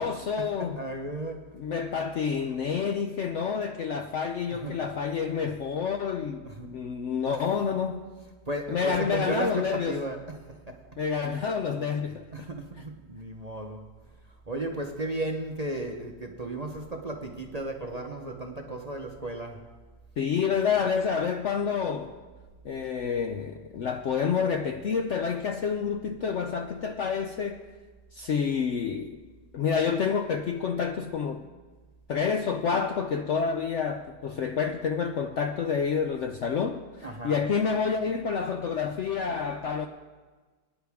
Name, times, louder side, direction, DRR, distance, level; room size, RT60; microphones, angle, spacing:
voice 1, 0.0-0.8 1.5-8.0 8.7-10.0 11.0-12.5 20.2-22.2 22.6-27.6 28.1-29.2 29.5-31.5 32.1-39.9, left 6 dB, 65° left, 0.7 m, -28 dB
voice 2, 0.6-1.4 4.5-4.8 6.4-6.7 7.3-7.5 8.5-10.2 12.3-13.8 14.5-19.6 37.0-37.4, right 2 dB, 35° right, 0.7 m, -34 dB
19.5 x 10.0 x 3.5 m
omnidirectional pair, 1.7 m